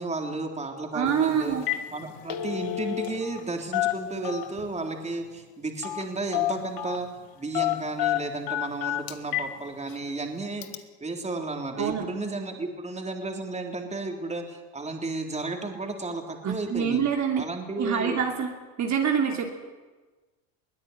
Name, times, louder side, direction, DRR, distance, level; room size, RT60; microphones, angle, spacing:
voice 1, 0.0-1.6 1.9-7.1 7.4-17.0 17.4-18.2, right 2 dB, 15° right, 3 dB, 3.7 m, -33 dB
voice 2, 0.9-1.7 11.8-12.1 16.4-17.4 17.8-18.5 18.8-19.5, right 7 dB, 45° right, 2 dB, 3.0 m, -26 dB
Telephone, 1.1-1.2 1.5-1.9 2.1-3.4 3.7-4.7 5.8-6.1 6.3-7.0 7.5-9.5 9.9-10.0 10.6-10.8, left 15 dB, 55° left, 1.7 m, -29 dB
22.5 x 16.5 x 9.9 m, 1.3 s
supercardioid pair, 110°, 41 cm